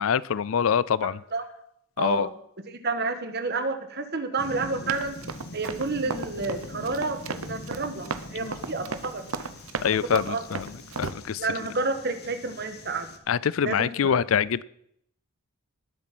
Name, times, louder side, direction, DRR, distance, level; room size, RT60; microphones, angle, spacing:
voice 1, 0.0-1.2 2.0-2.3 9.8-10.6 11.0-11.4 13.3-14.6, left 7 dB, 70° left, 20 dB, 0.4 m, -24 dB
voice 2, 1.0-1.4 2.0-2.3 2.7-5.2 5.5-9.2 9.9-10.4 11.4-13.1 13.6-14.2, right 3 dB, 50° right, 8 dB, 1.4 m, -30 dB
sound 1, 4.4-13.2, left 1 dB, 50° left, 1.3 m, -43 dB
Run, 4.9-11.1, right 4 dB, 75° right, 0.9 m, -35 dB
19.5 x 7.4 x 6.1 m, 0.73 s
head